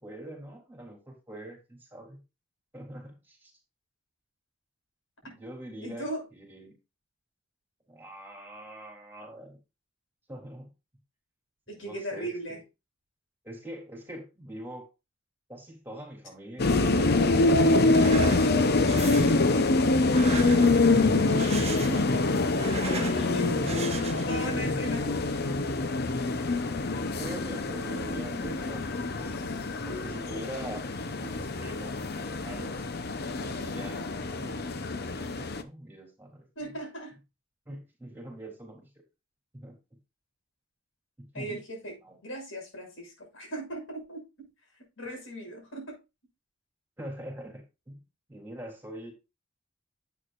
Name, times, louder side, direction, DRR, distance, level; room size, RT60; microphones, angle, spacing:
voice 1, 0.0-2.2 2.7-3.5 5.2-6.8 7.9-9.6 10.3-10.7 11.7-12.6 13.4-14.9 15.5-17.5 21.8-22.1 23.5-24.2 24.8-26.1 27.1-29.6 29.8-30.8 31.1-32.9 33.4-36.7 37.7-38.9 39.5-39.8 41.2-41.6 42.0-42.2 47.0-48.0 48.3-49.1, right 1 dB, 10° right, 1 dB, 3.6 m, -44 dB
voice 2, 5.8-6.2 11.7-12.6 20.1-20.9 21.1-22.0 22.8-25.1 36.6-37.1 41.3-42.0 42.2-44.2 45.0-46.0, right 1 dB, 90° left, 2 dB, 6.2 m, -38 dB
sound 1, 16.6-35.6, left 2 dB, 55° left, 0.9 m, -25 dB
sound 2, 17.9-18.5 18.9-19.4 20.0-20.9 21.3-22.1 22.4-23.2 23.6-24.4, right 5 dB, 35° right, 1.1 m, -38 dB
11.0 x 8.2 x 2.5 m, 0.26 s
head